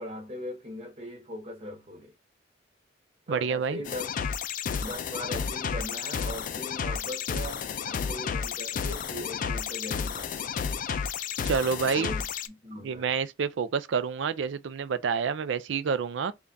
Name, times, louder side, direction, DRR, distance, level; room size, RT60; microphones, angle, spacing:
voice 1, 0.0-2.1 3.3-4.1 4.8-10.6 11.9-13.2, equal, 35° right, 1.0 m, -40 dB
voice 2, 3.3-3.8 11.4-12.1 12.8-16.3, right 6 dB, 70° right, 0.4 m, -28 dB
sound 1, 3.8-12.5, left 6 dB, 45° left, 0.3 m, -32 dB
3.4 x 2.3 x 3.8 m
head